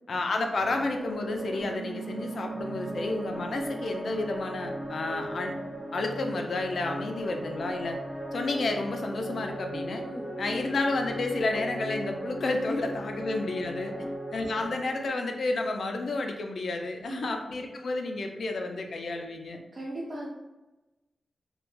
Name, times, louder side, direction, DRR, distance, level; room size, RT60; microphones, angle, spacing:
voice 1, 0.1-5.5 5.9-8.0 8.3-10.1 10.4-13.9 14.3-19.6, left 2 dB, 60° left, 4 dB, 0.3 m, -31 dB
sound 1, 0.6-15.1, right 1 dB, ahead, 1.0 m, -37 dB
Bass guitar, 1.6-7.8, right 5 dB, 90° right, 1.1 m, -44 dB
voice 2, 19.7-20.3, right 1 dB, 35° right, -5 dB, 0.4 m, -38 dB
2.2 x 2.0 x 3.0 m, 1.1 s
wide cardioid pair, 155°, 0 cm